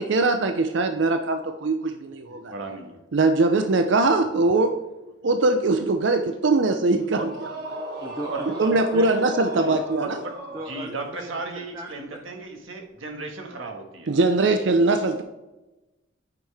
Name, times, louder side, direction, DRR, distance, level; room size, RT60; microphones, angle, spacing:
voice 1, 0.0-2.5 3.1-4.8 5.2-7.3 8.6-10.2 14.1-15.2, right 3 dB, 70° right, 7 dB, 0.5 m, -21 dB
voice 2, 2.5-3.0 7.2-7.3 8.3-8.5 10.0-10.4 10.7-14.1, right 3 dB, 90° right, 3 dB, 1.6 m, -35 dB
sound 1, 7.2-11.2, right 1 dB, 55° right, 1.6 m, -36 dB
voice 3, 7.8-9.8 10.5-12.2, right 1 dB, 15° right, 2 dB, 0.6 m, -38 dB
9.1 x 5.6 x 3.4 m, 1.1 s
head